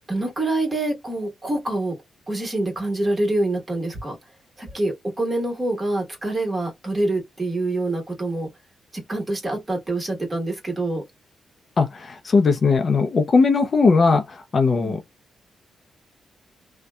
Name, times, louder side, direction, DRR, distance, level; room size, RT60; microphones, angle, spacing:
voice 1, 0.0-2.0 2.3-4.1 4.6-8.5 8.9-11.0 14.8-15.0, right 2 dB, 20° right, 1.3 m, -26 dB
voice 2, 11.8-15.0, left 4 dB, 45° left, 0.4 m, -19 dB
2.7 x 2.1 x 2.2 m
cardioid pair, 110°, 0 cm